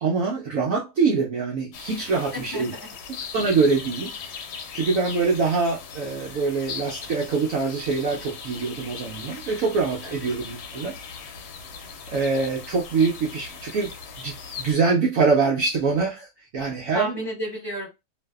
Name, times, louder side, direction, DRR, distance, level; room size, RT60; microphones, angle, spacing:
voice 1, 0.0-2.7 3.3-4.1 4.7-10.9 12.1-16.3 16.5-17.2, right 4 dB, 65° right, 0.9 m, -24 dB
sound 1, 1.7-14.7, left 6 dB, 75° left, 1.1 m, -39 dB
voice 2, 2.3-2.9 10.0-10.3 16.9-17.9, equal, 15° left, 1.0 m, -32 dB
2.6 x 2.5 x 2.2 m
omnidirectional pair, 1.8 m